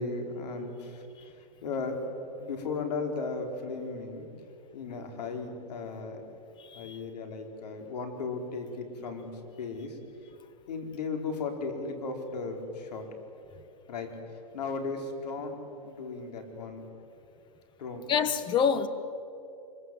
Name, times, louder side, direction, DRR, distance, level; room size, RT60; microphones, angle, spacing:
voice 1, 0.0-4.3 4.7-6.2 6.7-9.3 9.6-10.0 10.7-13.1 13.9-14.1 14.5-15.6 15.8-16.8 17.8-18.1, left 4 dB, 75° left, 4 dB, 4.8 m, -36 dB
voice 2, 6.7-7.0 18.1-18.9, left 7 dB, 20° left, 11 dB, 1.5 m, -26 dB
25.5 x 24.0 x 8.0 m, 2.7 s
hypercardioid pair, 135°, 21 cm